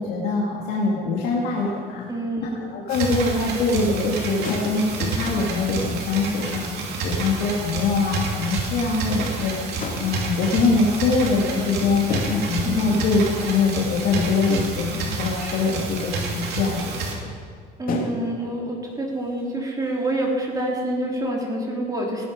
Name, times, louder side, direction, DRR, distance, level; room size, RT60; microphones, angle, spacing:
voice 1, 0.0-2.1 2.4-6.7 7.0-9.6 10.0-17.0, left 4 dB, 85° left, -3 dB, 2.2 m, -23 dB
sound 1, 1.2-2.1 2.5-3.0 3.6-3.7 3.9-6.8 7.1-7.7 8.1-8.3 9.8-10.3 12.1-12.6 13.0-17.4 17.9-18.5 18.9-21.0, left 4 dB, 60° left, 2.3 m, -37 dB
voice 2, 2.1-2.6 12.6-13.0 17.8-22.2, right 1 dB, 20° right, -2 dB, 3.6 m, -27 dB
sound 2, 2.9-17.1, right 4 dB, 75° right, 2.9 m, -29 dB
17.5 x 9.9 x 5.2 m, 2.1 s
cardioid pair, 110°, 17 cm